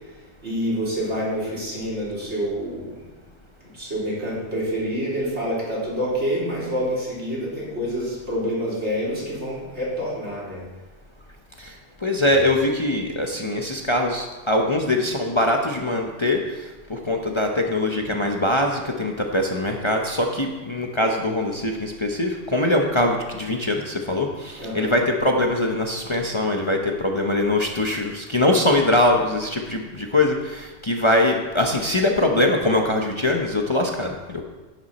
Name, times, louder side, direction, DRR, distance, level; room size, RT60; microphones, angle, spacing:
voice 1, 0.4-3.0 3.6-10.6 12.2-12.4 24.6-25.0, equal, 70° right, -6 dB, 3.9 m, -27 dB
voice 2, 12.0-16.6 16.9-34.4, left 1 dB, 25° left, 1 dB, 0.8 m, -22 dB
11.0 x 9.4 x 4.2 m, 1.2 s
omnidirectional pair, 1.2 m